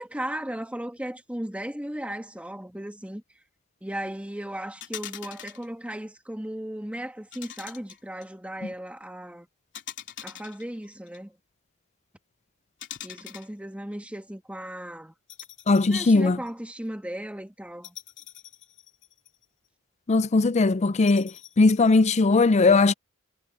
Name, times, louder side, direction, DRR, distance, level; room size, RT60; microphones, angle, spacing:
voice 1, 0.0-3.2 3.8-9.5 10.2-11.4 13.0-15.1 15.9-18.0, right 1 dB, 5° right, 1.9 m, -36 dB
sound 1, 4.8-5.7 7.3-8.2 9.7-11.2 12.8-13.5 15.3-16.1 16.5-16.6 17.8-19.4 21.1-22.2, left 10 dB, 60° left, 3.2 m, -43 dB
voice 2, 15.7-16.4 20.1-21.3 21.6-22.9, left 3 dB, 30° left, 0.5 m, -19 dB
head